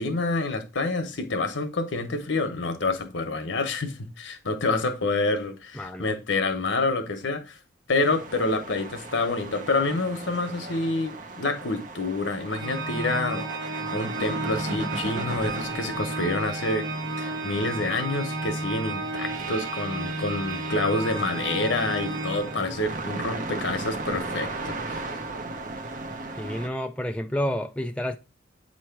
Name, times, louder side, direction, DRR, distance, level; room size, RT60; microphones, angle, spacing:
voice 1, 0.0-7.6 7.9-16.9 17.2-25.1, left 2 dB, 80° left, 1.0 m, -28 dB
voice 2, 5.8-6.1 26.4-28.2, equal, 5° left, 0.3 m, -29 dB
sound 1, 8.0-26.7, right 2 dB, 40° right, 0.7 m, -37 dB
Organ, 12.5-23.1, right 2 dB, 70° right, 1.2 m, -33 dB
8.4 x 3.1 x 4.5 m
head